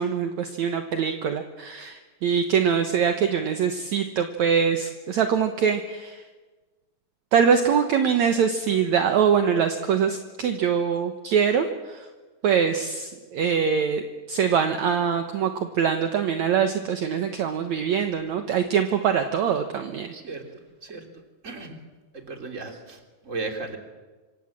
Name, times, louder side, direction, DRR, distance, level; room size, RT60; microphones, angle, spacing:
voice 1, 0.0-6.2 7.3-12.1 12.4-20.1, right 7 dB, 65° right, 6 dB, 2.3 m, -23 dB
voice 2, 20.1-20.4 20.8-21.1 21.4-21.8 22.1-23.0 23.2-23.8, right 3 dB, 20° right, 3 dB, 3.3 m, -35 dB
26.5 x 26.0 x 7.6 m, 1.3 s
omnidirectional pair, 4.0 m